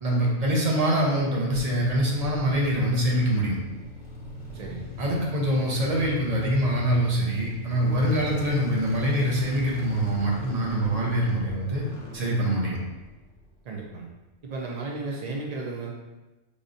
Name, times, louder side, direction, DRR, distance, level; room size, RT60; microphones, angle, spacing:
voice 1, 0.0-3.6 5.0-11.8 12.1-12.8, right 1 dB, 35° right, -3 dB, 0.7 m, -24 dB
sound 1, 1.5-13.7, left 1 dB, 30° left, 0.7 m, -40 dB
voice 2, 4.5-4.9 13.6-14.1 14.4-15.9, right 3 dB, 70° right, -1 dB, 0.3 m, -34 dB
4.8 x 2.6 x 2.6 m, 1.1 s
omnidirectional pair, 1.3 m